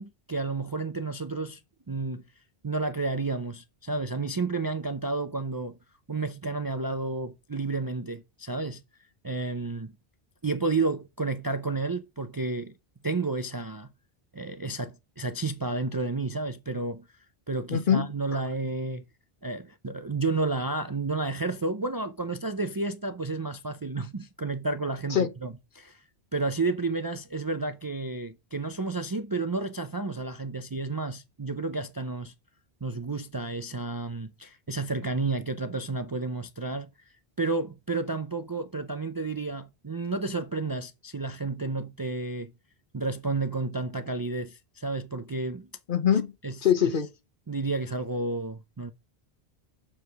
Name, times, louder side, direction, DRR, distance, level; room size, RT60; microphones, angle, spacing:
voice 1, 0.0-1.6 1.9-2.2 2.6-5.8 6.1-8.8 9.2-9.9 10.4-12.7 13.0-13.9 14.3-17.1 17.5-19.0 19.4-26.0 26.3-32.3 32.8-36.9 37.4-42.5 42.9-45.7 46.4-46.6 46.8-46.9 47.5-48.9, right 3 dB, 30° right, 0.4 m, -31 dB
voice 2, 17.7-18.4 25.1-25.3 45.9-46.3 46.6-47.1, left 9 dB, 55° left, 1.0 m, -24 dB
7.1 x 4.8 x 4.6 m
omnidirectional pair, 1.0 m